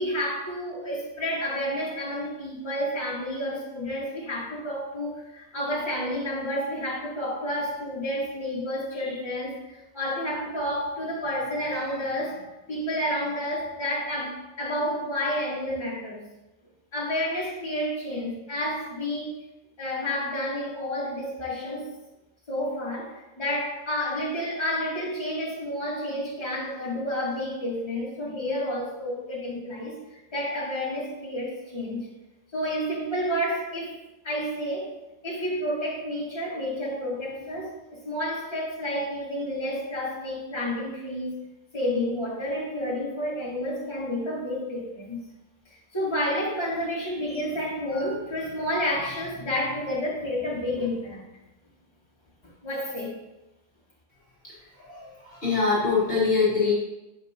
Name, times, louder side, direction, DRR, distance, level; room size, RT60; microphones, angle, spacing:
voice 1, 0.0-12.4 12.7-16.2 16.9-19.3 19.8-21.9 22.5-32.1 32.5-34.0 34.2-34.9 35.2-41.3 41.7-45.2 45.9-51.2 52.6-53.1, left 1 dB, 20° left, -7 dB, 1.9 m, -30 dB
voice 2, 54.4-56.7, left 5 dB, 45° left, -7 dB, 1.7 m, -24 dB
7.7 x 5.2 x 2.7 m, 0.97 s
omnidirectional pair, 1.4 m